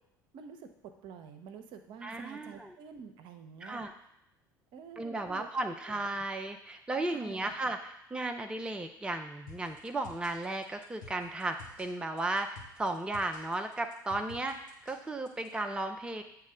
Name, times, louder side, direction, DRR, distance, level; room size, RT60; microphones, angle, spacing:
voice 1, 0.3-3.8 4.7-5.5 5.9-6.0 7.1-7.5, right 6 dB, 50° right, 7 dB, 0.7 m, -48 dB
voice 2, 2.0-2.7 3.6-3.9 5.0-12.5 12.8-16.2, right 2 dB, 10° right, 5 dB, 0.5 m, -35 dB
sound 1, 9.5-15.5, left 4 dB, 80° left, 1.1 m, -52 dB
8.3 x 3.1 x 4.9 m, 0.79 s
figure-of-eight pair, 65°, 10 cm